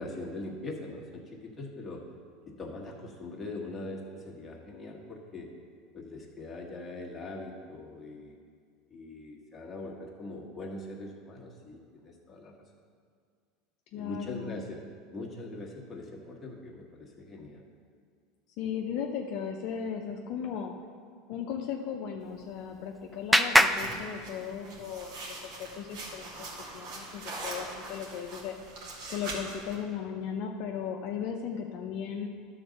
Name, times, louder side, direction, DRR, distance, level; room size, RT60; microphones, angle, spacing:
voice 1, 0.0-2.0 2.5-5.5 5.9-8.4 8.9-12.5 13.9-14.8 15.1-17.6, left 2 dB, 20° left, -2 dB, 1.4 m, -41 dB
voice 2, 13.9-14.6 18.6-20.8 21.3-26.5 26.7-28.6 29.1-32.3, left 7 dB, 60° left, 2 dB, 0.6 m, -36 dB
Clapping, 22.2-24.8, equal, 5° right, 0.4 m, -27 dB
sound 1, 23.7-29.8, right 2 dB, 65° right, 2.0 m, -42 dB
11.0 x 3.9 x 6.4 m, 2.1 s
supercardioid pair, 120°, 0 cm